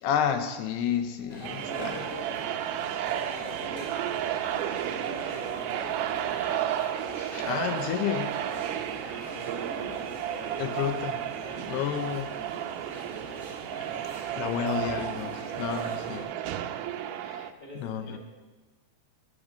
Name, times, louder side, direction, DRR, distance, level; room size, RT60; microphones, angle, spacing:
voice 1, 0.0-2.0 7.4-8.3 10.6-11.3 11.7-12.3 14.4-16.2 17.2-18.2, left 9 dB, 80° left, 9 dB, 2.9 m, -31 dB
sound 1, 1.3-16.2, equal, 5° left, 4.2 m, -43 dB
sound 2, 1.4-17.5, right 11 dB, 80° right, 1.8 m, -33 dB
voice 2, 1.6-2.2 3.0-4.5 4.8-6.3 9.2-10.9 14.4-14.7 15.3-16.4 17.6-18.2, equal, 15° right, -2 dB, 3.3 m, -45 dB
sound 3, 5.3-5.7 6.2-6.9 8.0-8.6 9.1-10.0 10.7-11.2 12.5-13.0, right 2 dB, 40° right, 0.6 m, -52 dB
12.5 x 11.5 x 7.6 m, 1.2 s
omnidirectional pair, 4.7 m